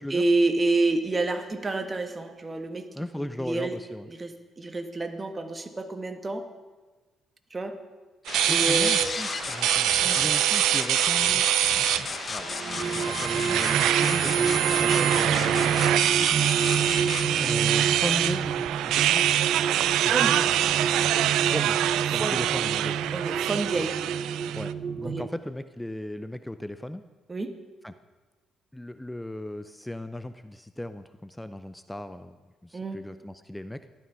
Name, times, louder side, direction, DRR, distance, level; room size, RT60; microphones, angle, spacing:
voice 1, 0.1-2.8 3.2-3.8 4.1-6.4 7.5-7.8 8.5-9.1 10.0-10.2 20.1-20.4 22.2-22.4 23.1-24.0 25.0-25.3 27.3-27.5 32.7-33.0, right 2 dB, 25° right, 7 dB, 1.5 m, -28 dB
voice 2, 2.9-4.1 8.5-11.5 12.3-15.9 17.4-19.2 20.0-20.4 21.4-21.8 22.1-23.0 24.6-27.0 27.8-27.9 28.7-32.4 32.6-33.8, left 1 dB, 5° left, 11 dB, 0.6 m, -37 dB
sound 1, 8.3-17.5, left 5 dB, 40° left, 0.8 m, -34 dB
sound 2, 8.3-24.7, right 12 dB, 85° right, 0.4 m, -25 dB
sound 3, 12.5-25.3, right 6 dB, 45° right, 0.9 m, -29 dB
14.5 x 12.0 x 5.7 m, 1.3 s
cardioid pair, 90°, 0 cm